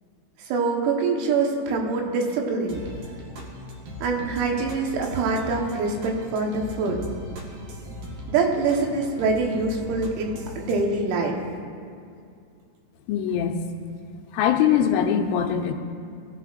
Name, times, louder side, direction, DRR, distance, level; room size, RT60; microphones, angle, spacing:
voice 1, 0.5-2.8 4.0-7.0 8.3-11.4, right 4 dB, 85° right, 1 dB, 4.0 m, -24 dB
sound 1, 2.7-10.8, equal, 70° right, 2.0 m, -39 dB
voice 2, 13.1-13.6 14.3-15.7, left 9 dB, 80° left, 3 dB, 3.0 m, -22 dB
19.5 x 13.0 x 2.5 m, 2.4 s
omnidirectional pair, 5.9 m